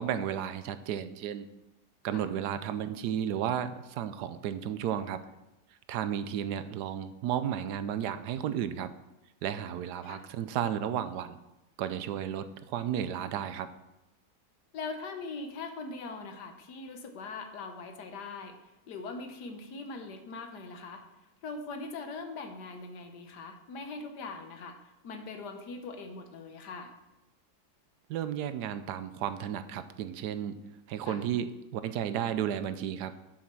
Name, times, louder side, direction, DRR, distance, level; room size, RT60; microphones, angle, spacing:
voice 1, 0.0-1.5 2.0-5.2 5.9-8.9 9.4-11.4 11.8-13.7 28.1-30.6 30.9-33.1, right 9 dB, 80° right, 12 dB, 1.2 m, -33 dB
voice 2, 9.7-10.2 14.7-18.5 18.9-21.0 21.4-24.8 25.0-26.9 31.1-31.2, left 3 dB, 80° left, 6 dB, 1.6 m, -41 dB
7.3 x 7.2 x 6.0 m, 0.96 s
omnidirectional pair, 1.8 m